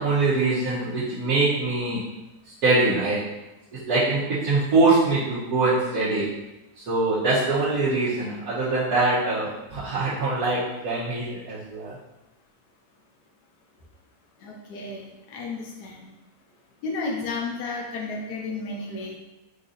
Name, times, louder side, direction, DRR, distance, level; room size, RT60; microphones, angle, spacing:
voice 1, 0.0-2.0 2.6-3.3 3.9-6.4 6.8-11.9, right 3 dB, 70° right, -11 dB, 1.5 m, -23 dB
voice 2, 14.4-16.1 16.8-19.2, left 3 dB, 80° left, -1 dB, 1.2 m, -33 dB
4.6 x 2.7 x 3.8 m, 0.95 s
omnidirectional pair, 1.7 m